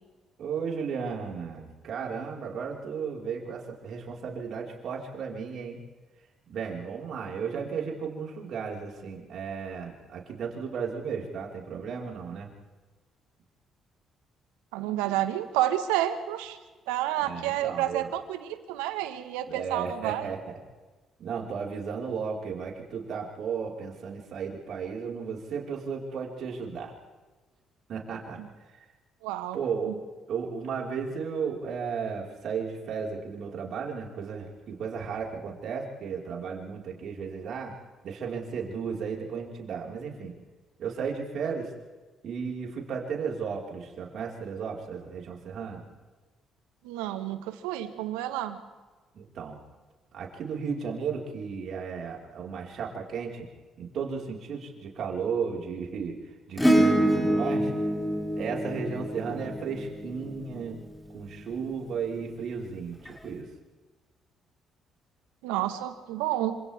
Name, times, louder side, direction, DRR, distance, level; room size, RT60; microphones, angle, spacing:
voice 1, 0.4-5.8 6.5-12.5 17.2-18.1 19.5-20.6 21.2-26.9 27.9-28.4 29.5-29.9 30.3-37.7 38.0-40.3 40.8-41.7 42.2-45.8 49.1-49.6 50.1-53.5 53.8-56.2 56.5-57.7 58.4-60.8 61.1-63.5, right 6 dB, 65° right, -1 dB, 5.3 m, -34 dB
voice 2, 14.7-16.6 16.9-20.3 29.2-29.6 29.9-30.0 46.8-48.6 65.4-66.6, right 13 dB, 85° right, 9 dB, 1.7 m, -30 dB
Acoustic guitar / Strum, 56.6-61.2 63.1-63.2, equal, 5° left, 6.4 m, -26 dB
28.5 x 27.0 x 3.7 m, 1.3 s
hypercardioid pair, 55°, 0 cm